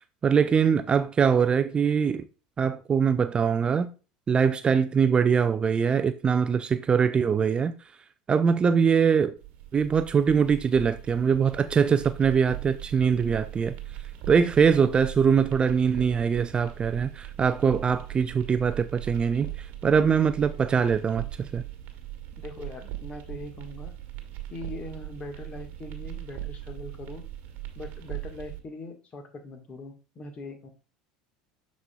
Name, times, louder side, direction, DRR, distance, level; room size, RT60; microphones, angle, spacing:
voice 1, 0.2-2.2 2.6-3.9 4.3-7.7 8.3-9.4 9.7-13.7 14.3-21.6, right 6 dB, 25° right, 0.4 m, -23 dB
sound 1, 9.4-28.6, right 14 dB, 50° right, 1.2 m, -40 dB
voice 2, 22.4-23.9 24.5-27.2 27.7-30.7, left 2 dB, 35° left, 1.5 m, -41 dB
12.5 x 4.2 x 2.3 m
figure-of-eight pair, 70°, 4 cm